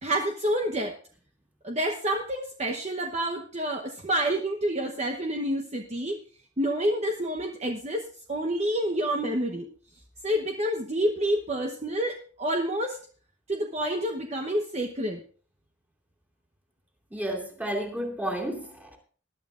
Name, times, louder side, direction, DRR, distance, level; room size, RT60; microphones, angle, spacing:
voice 1, 0.0-1.0 1.6-6.2 6.6-9.7 10.2-13.0 13.5-15.2, right 1 dB, 35° right, 2 dB, 1.0 m, -28 dB
voice 2, 17.1-19.0, right 1 dB, 10° right, 0 dB, 2.7 m, -32 dB
20.5 x 11.5 x 2.5 m, 0.42 s
head